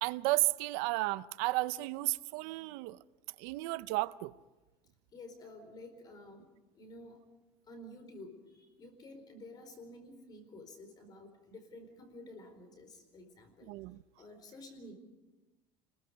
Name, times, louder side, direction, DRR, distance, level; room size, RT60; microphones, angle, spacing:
voice 1, 0.0-3.0 3.4-4.3 13.7-14.0, right 20 dB, 75° right, 0.6 m, -33 dB
voice 2, 5.1-6.5 6.7-7.2 7.7-13.7 14.2-14.9, left 1 dB, 30° left, 4.5 m, -51 dB
27.5 x 21.5 x 5.3 m
cardioid pair, 150°, 14 cm